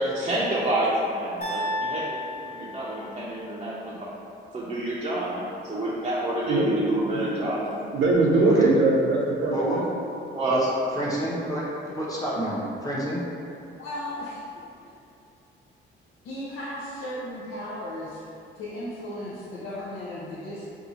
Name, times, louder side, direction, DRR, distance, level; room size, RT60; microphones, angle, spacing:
voice 1, 0.0-2.0 2.4-4.1 4.5-7.7 10.3-10.6, right 1 dB, 25° right, -9 dB, 0.5 m, -28 dB
sound 1, 1.4-3.5, left 1 dB, 50° left, 1.1 m, -33 dB
voice 2, 6.5-6.8 7.1-7.3 7.9-9.8, right 2 dB, 70° right, -2 dB, 0.7 m, -21 dB
voice 3, 9.5-9.8 10.5-10.6 10.9-13.2, equal, 20° left, -7 dB, 0.8 m, -29 dB
voice 4, 13.8-14.4 16.2-18.2 18.6-20.6, left 1 dB, 80° left, -8 dB, 0.6 m, -35 dB
2.7 x 2.3 x 4.1 m, 2.5 s
cardioid pair, 90°, 20 cm